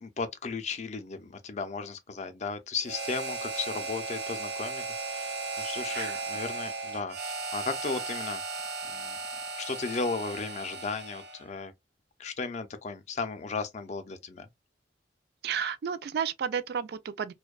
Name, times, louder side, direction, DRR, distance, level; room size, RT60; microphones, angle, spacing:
voice 1, 0.0-8.4 8.8-9.2 9.6-11.7 12.2-14.5, left 4 dB, 40° left, 0.4 m, -35 dB
Harmonica, 2.8-11.5, right 3 dB, 85° right, 1.0 m, -36 dB
voice 2, 5.9-6.2 15.4-17.3, right 7 dB, 60° right, 0.3 m, -32 dB
2.6 x 2.1 x 2.2 m
head